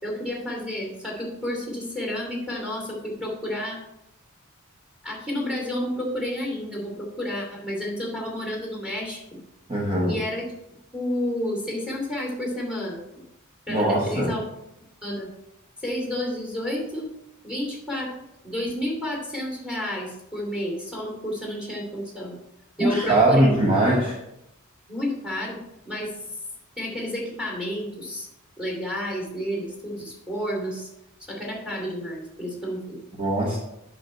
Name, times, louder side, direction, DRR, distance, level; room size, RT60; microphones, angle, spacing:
voice 1, 0.0-3.8 5.0-9.4 10.0-10.4 10.9-13.2 13.7-14.4 15.0-15.3 15.8-17.1 17.4-18.1 18.4-22.4 22.8-23.6 24.9-25.6 25.8-26.1 26.8-28.3 28.6-30.9 31.3-33.0, left 1 dB, 5° right, -1 dB, 2.7 m, -30 dB
voice 2, 9.7-10.2 13.7-14.4 22.8-24.2 33.2-33.6, right 1 dB, 25° right, -2 dB, 1.0 m, -21 dB
8.6 x 6.4 x 4.4 m, 0.86 s
head